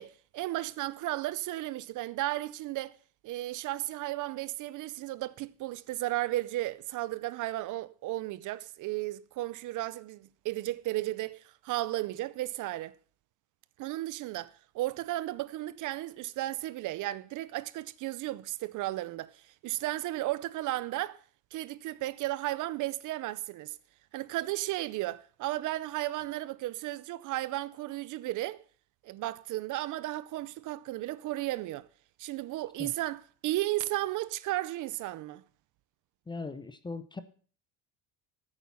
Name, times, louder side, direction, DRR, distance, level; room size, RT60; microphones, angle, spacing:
voice 1, 0.0-3.0 3.2-13.0 13.8-21.2 21.5-23.8 24.1-28.6 29.0-31.9 32.2-35.4, right 16 dB, 50° right, 0.5 m, -34 dB
voice 2, 36.3-37.2, left 3 dB, 10° left, 0.5 m, -39 dB
13.5 x 8.7 x 5.6 m
cardioid pair, 165°, 40 cm